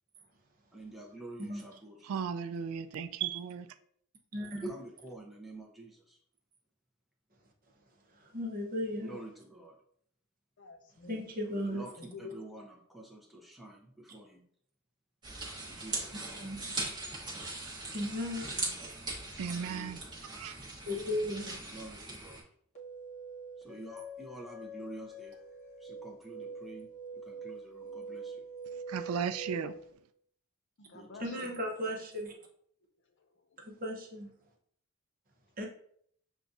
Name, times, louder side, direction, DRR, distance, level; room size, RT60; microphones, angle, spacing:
voice 1, 0.7-2.1 4.5-6.2 9.0-9.8 11.5-14.4 15.6-16.8 18.4-18.8 19.5-20.0 21.6-22.4 23.6-25.4 25.8-28.4 30.9-31.5, right 2 dB, ahead, 0.7 m, -49 dB
voice 2, 2.0-3.7 19.4-20.0 20.3-20.6 28.9-29.7, right 7 dB, 75° right, 0.3 m, -35 dB
voice 3, 4.3-4.7 8.2-9.2 11.1-11.8 15.6-15.7 16.1-16.8 17.9-18.5 20.8-21.5 31.2-32.4 33.6-34.3 35.6-35.7, left 1 dB, 40° right, 0.8 m, -36 dB
voice 4, 10.6-11.2 11.6-12.4 21.2-21.6 30.8-31.6 33.0-33.6, left 4 dB, 55° left, 0.6 m, -50 dB
sound 1, 15.2-22.4, right 2 dB, 20° right, 1.1 m, -40 dB
sound 2, 22.7-29.9, right 3 dB, 30° left, 1.0 m, -45 dB
6.8 x 2.3 x 2.6 m
head